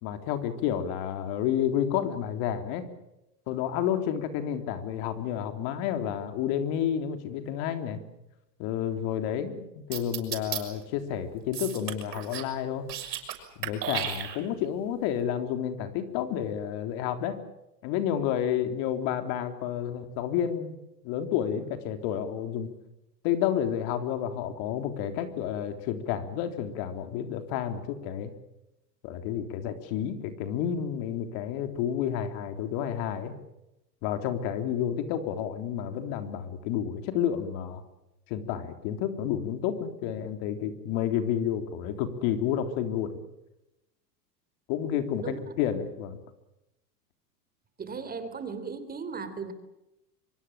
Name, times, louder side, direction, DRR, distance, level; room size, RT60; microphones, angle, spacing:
voice 1, 0.0-2.9 3.5-8.0 8.6-12.9 13.6-17.4 17.8-20.8 21.0-22.7 23.2-28.3 29.0-33.3 34.0-37.8 38.3-43.2 44.7-46.2, left 9 dB, 50° left, 8 dB, 3.5 m, -30 dB
sound 1, 9.9-10.6 11.5-12.5 12.8-13.4 13.6-14.7, right 10 dB, 75° right, 7.6 m, -33 dB
voice 2, 47.8-49.5, right 5 dB, 20° right, 10 dB, 3.3 m, -36 dB
24.5 x 24.0 x 7.5 m, 0.90 s
hypercardioid pair, 125°, 50 cm